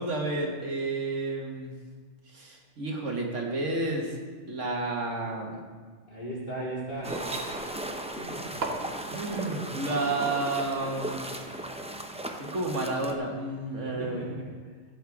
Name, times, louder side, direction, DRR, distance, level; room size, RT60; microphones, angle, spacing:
voice 1, 0.0-1.7 2.3-4.1 4.5-5.6 9.1-11.2 12.4-14.5, right 2 dB, 85° right, 0 dB, 2.0 m, -31 dB
voice 2, 6.1-7.3 7.5-7.6 8.2-8.4 8.7-8.9 13.8-14.4, right 1 dB, 50° left, -8 dB, 4.2 m, -37 dB
sound 1, 6.9-9.9 11.0-11.1, right 3 dB, 60° right, 1.3 m, -39 dB
sound 2, 7.0-13.1, right 1 dB, 5° right, 0.5 m, -36 dB
15.5 x 8.6 x 3.6 m, 1.5 s
omnidirectional pair, 1.2 m